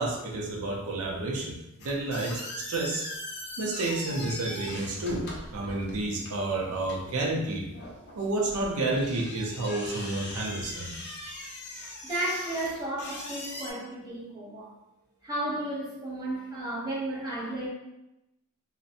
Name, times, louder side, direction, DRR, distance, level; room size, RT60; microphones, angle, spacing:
voice 1, 0.0-1.5 1.8-3.1 3.6-5.2 5.5-7.7 8.2-10.9, right 2 dB, 75° right, -1 dB, 0.5 m, -30 dB
sound 1, 1.8-13.7, left 1 dB, 50° left, 0.5 m, -41 dB
voice 2, 11.8-14.7 15.2-17.7, right 1 dB, 20° right, -6 dB, 0.7 m, -33 dB
2.5 x 2.1 x 2.6 m, 0.91 s
head